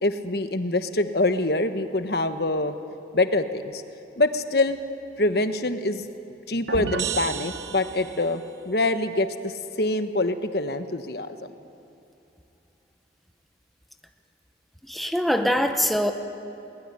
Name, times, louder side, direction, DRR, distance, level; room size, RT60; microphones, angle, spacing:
voice 1, 0.0-2.7 3.1-3.8 4.1-4.8 5.2-6.1 6.5-11.4, left 2 dB, 60° left, 8 dB, 1.3 m, -25 dB
sound 1, 6.7-8.4, right 5 dB, 85° right, 1.7 m, -31 dB
voice 2, 14.9-16.1, equal, ahead, 5 dB, 1.1 m, -23 dB
22.0 x 21.0 x 10.0 m, 2.7 s
head